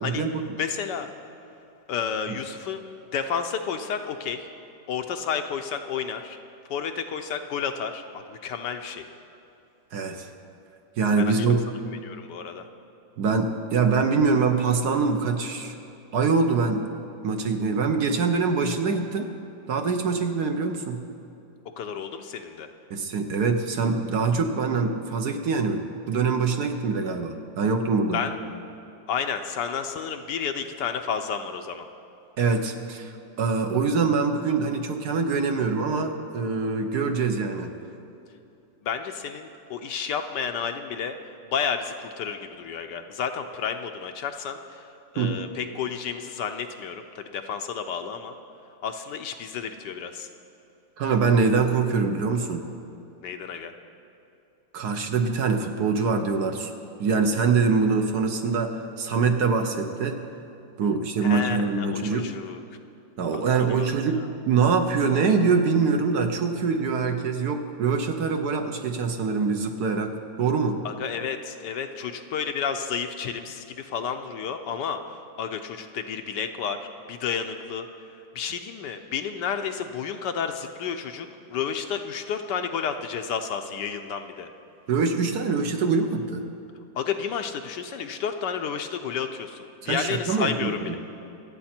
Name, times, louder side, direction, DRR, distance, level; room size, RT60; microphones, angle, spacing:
voice 1, 0.0-0.3 9.9-10.3 11.0-11.6 13.2-15.7 16.1-16.9 17.2-19.3 19.7-21.0 22.9-28.2 32.4-33.1 33.4-37.7 45.2-45.4 51.0-52.7 54.7-56.7 57.0-60.2 60.8-62.3 63.2-70.8 84.9-86.5 89.8-91.0, right 4 dB, 60° right, 5 dB, 1.3 m, -24 dB
voice 2, 0.6-1.1 1.9-2.8 3.1-4.5 4.9-6.4 6.7-9.0 11.2-11.5 12.0-12.7 21.8-22.7 28.1-28.4 29.1-31.9 38.8-41.2 41.5-44.8 45.1-48.4 48.8-50.3 53.2-53.7 61.2-62.6 63.3-63.4 63.7-63.9 70.8-77.9 78.3-84.5 86.9-91.0, left 7 dB, 70° left, 6 dB, 1.2 m, -31 dB
25.5 x 8.7 x 4.4 m, 2.8 s
omnidirectional pair, 2.1 m